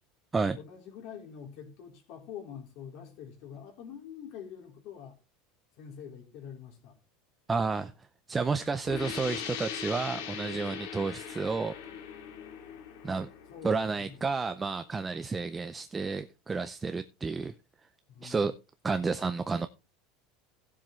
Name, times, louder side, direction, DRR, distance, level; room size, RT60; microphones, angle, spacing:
voice 1, 0.6-5.2 5.8-7.0 13.5-14.2 18.1-18.5, left 8 dB, 50° left, 3.5 m, -45 dB
voice 2, 7.5-7.9 8.3-11.7 13.0-13.3 13.6-17.5 18.2-18.6 18.8-19.7, right 4 dB, 10° right, 0.4 m, -31 dB
sound 1, 8.9-14.3, left 8 dB, 75° left, 2.1 m, -40 dB
16.5 x 7.5 x 3.1 m
supercardioid pair, 170°, 0 cm